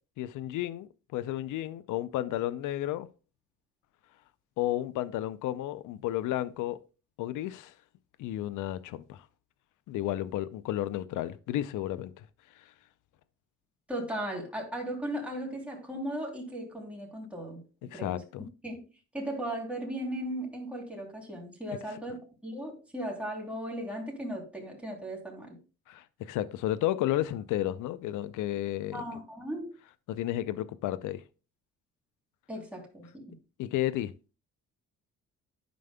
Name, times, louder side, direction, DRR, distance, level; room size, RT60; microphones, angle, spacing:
voice 1, 0.2-3.1 4.6-6.8 7.2-7.7 8.2-9.3 9.9-12.2 12.6-12.7 17.9-18.5 25.9-29.0 30.1-31.2 33.6-34.1, left 13 dB, 85° left, 0.5 m, -32 dB
voice 2, 13.9-17.6 17.9-18.2 18.6-18.8 19.1-25.6 28.9-29.7 32.5-33.2, right 1 dB, 5° right, 3.0 m, -37 dB
11.0 x 5.2 x 2.2 m
cardioid pair, 90°, 30 cm